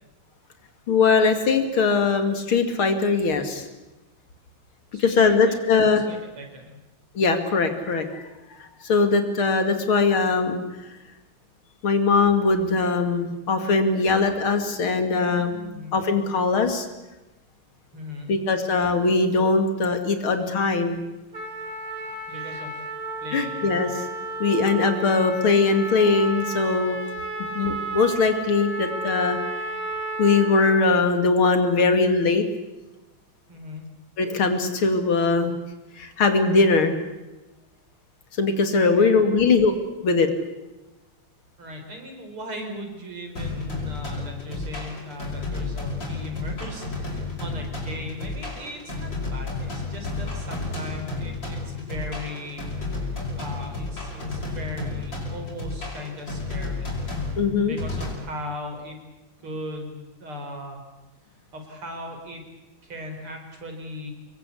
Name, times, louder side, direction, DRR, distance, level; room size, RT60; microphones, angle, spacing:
voice 1, 0.9-3.7 5.0-6.0 7.1-8.2 8.8-10.6 11.8-16.9 18.3-21.0 23.3-24.0 24.4-27.0 27.6-29.4 30.2-32.4 34.2-35.5 36.0-37.0 38.4-39.7 40.0-40.3 57.4-57.8, left 4 dB, 75° left, 7 dB, 3.2 m, -21 dB
voice 2, 4.9-6.8 15.7-15.9 17.9-18.3 22.3-22.8 23.2-23.6 33.5-33.9 38.9-39.3 41.6-56.9 57.6-59.0 59.4-60.8 61.5-62.4 62.8-64.1, left 1 dB, 90° right, 4 dB, 5.3 m, -38 dB
Trumpet, 21.3-30.8, right 2 dB, 40° right, 3.5 m, -33 dB
sound 1, 43.4-58.1, left 3 dB, 60° left, 6.6 m, -32 dB
25.5 x 21.5 x 8.5 m, 1.0 s
omnidirectional pair, 2.3 m